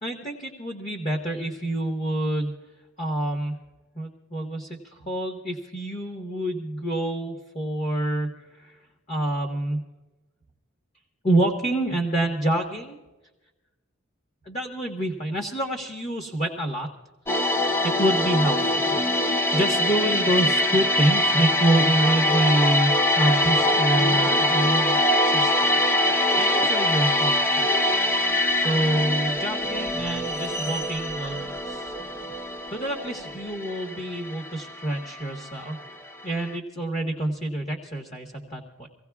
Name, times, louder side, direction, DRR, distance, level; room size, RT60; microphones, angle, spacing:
voice 1, 0.0-2.5 3.0-3.6 3.9-8.8 9.1-9.8 11.2-13.0 14.4-16.9 17.3-17.4 17.8-18.9 19.5-25.0 25.2-25.7 26.4-27.6 28.6-31.8 32.7-35.8 36.2-38.9, right 1 dB, 35° left, 1 dB, 1.3 m, -27 dB
sound 1, 17.3-36.1 36.4-36.6, left 1 dB, 10° left, 0.4 m, -23 dB
sound 2, 28.1-33.3, right 2 dB, 85° left, 3.2 m, -41 dB
25.5 x 16.5 x 2.4 m, 1.1 s
head